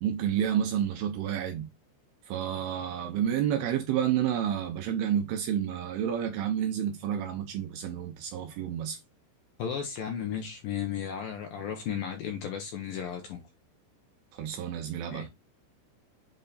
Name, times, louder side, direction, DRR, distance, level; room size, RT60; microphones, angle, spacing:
voice 1, 0.0-1.7 2.3-9.0 14.3-15.3, right 9 dB, 85° right, 2.3 m, -30 dB
voice 2, 9.6-13.4 15.1-15.3, left 8 dB, 85° left, 2.1 m, -34 dB
8.1 x 3.4 x 4.1 m
omnidirectional pair, 5.4 m